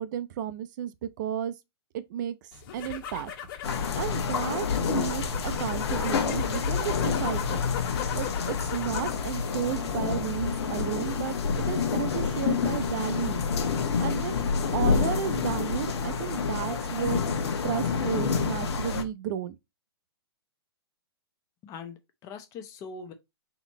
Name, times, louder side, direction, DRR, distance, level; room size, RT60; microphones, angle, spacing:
voice 1, 0.0-1.5 1.9-2.4 2.7-3.3 4.0-7.6 8.1-11.4 11.7-13.4 14.0-14.4 14.7-17.2 17.6-19.5, right 10 dB, 45° right, 0.6 m, -33 dB
sound 1, 2.5-9.3 9.6-10.2, left 9 dB, 55° left, 1.5 m, -38 dB
sound 2, 3.6-19.0, left 5 dB, 80° left, 1.2 m, -28 dB
voice 2, 21.6-23.1, left 5 dB, 25° left, 0.8 m, -42 dB
4.0 x 3.0 x 4.1 m
hypercardioid pair, 155°, 14 cm